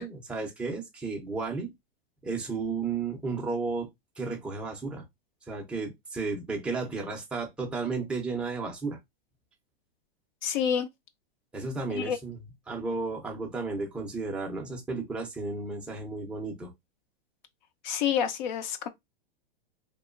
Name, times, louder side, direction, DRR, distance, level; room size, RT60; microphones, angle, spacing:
voice 1, 0.0-1.7 2.2-3.9 4.2-5.0 5.5-9.0 11.5-12.4 12.7-16.7, right 4 dB, 5° right, 0.4 m, -33 dB
voice 2, 10.4-10.9 11.9-12.2 17.8-18.9, left 8 dB, 50° left, 0.5 m, -28 dB
2.9 x 2.1 x 2.3 m
hypercardioid pair, 145°, 29 cm